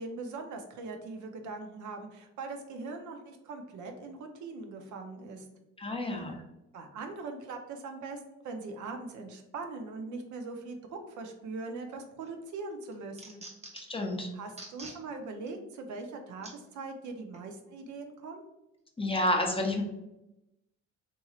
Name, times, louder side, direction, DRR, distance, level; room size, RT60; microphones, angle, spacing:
voice 1, 0.0-5.5 6.7-13.4 14.3-18.4, right 3 dB, 75° right, 4 dB, 0.6 m, -41 dB
voice 2, 5.8-6.4 13.7-14.3 19.0-19.8, left 1 dB, 20° left, 2 dB, 0.5 m, -30 dB
sound 1, 11.9-12.3 12.7-14.0 14.5-15.0 15.5-15.6 16.4-16.6 17.3-17.5, right 2 dB, 20° right, 0.7 m, -47 dB
2.9 x 2.7 x 2.3 m, 0.91 s
cardioid pair, 90°, 30 cm